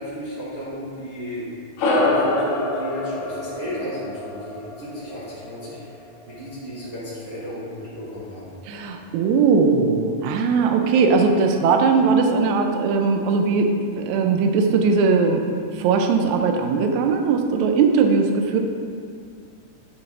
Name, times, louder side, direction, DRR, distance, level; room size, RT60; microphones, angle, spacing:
voice 1, 0.0-1.4 1.9-8.5, equal, 65° right, -12 dB, 0.9 m, -34 dB
sound 1, 1.8-6.5, left 2 dB, 70° left, 1.9 m, -26 dB
voice 2, 8.7-15.4 15.7-18.6, right 5 dB, 85° right, 4 dB, 1.6 m, -19 dB
8.7 x 3.3 x 3.6 m, 2.3 s
omnidirectional pair, 3.8 m